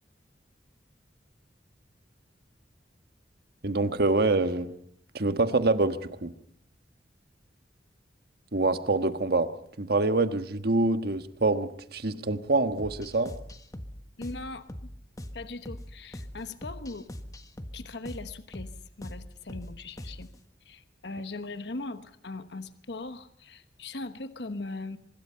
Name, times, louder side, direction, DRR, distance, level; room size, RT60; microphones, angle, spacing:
voice 1, 3.6-4.7 5.1-6.3 8.5-9.5 9.8-13.3, right 2 dB, 60° right, 10 dB, 1.4 m, -25 dB
sound 1, 12.8-20.4, equal, 20° left, 1.4 m, -42 dB
voice 2, 14.2-14.9 15.3-17.1 17.7-20.3 20.6-25.0, left 2 dB, 70° left, 11 dB, 1.1 m, -39 dB
24.5 x 21.5 x 5.7 m, 0.68 s
head